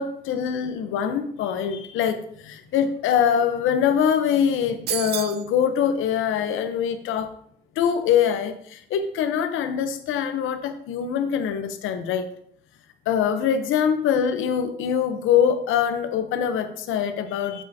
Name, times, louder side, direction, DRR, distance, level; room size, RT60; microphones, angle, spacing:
voice 1, 0.0-7.3 7.8-12.3 13.1-17.6, left 8 dB, 85° left, 9 dB, 0.8 m, -23 dB
sound 1, 4.9-5.5, right 12 dB, 55° right, 0.4 m, -29 dB
8.1 x 7.5 x 2.8 m, 0.68 s
cardioid pair, 90°, 20 cm